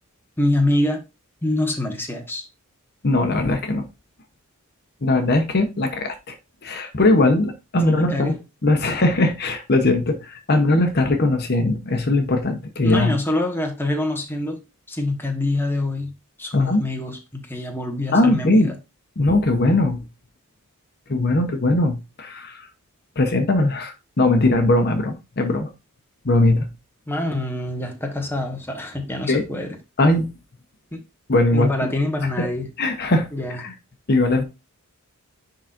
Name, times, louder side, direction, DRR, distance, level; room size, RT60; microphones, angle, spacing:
voice 1, 0.4-1.0 1.4-2.4 7.9-8.4 12.8-14.6 14.9-16.1 16.4-18.7 27.1-29.8 30.9-31.0 31.5-32.7 33.3-33.6, left 1 dB, 10° left, 1.2 m, -25 dB
voice 2, 3.0-3.8 5.0-6.3 6.6-8.3 8.6-13.2 16.5-16.8 18.1-18.7 19.2-20.1 21.1-22.7 23.2-25.7 26.2-26.7 29.3-29.4 30.0-30.3 31.3-31.9 32.8-33.3 33.6-33.7 34.1-34.4, left 2 dB, 45° left, 0.9 m, -20 dB
10.0 x 3.9 x 2.6 m
head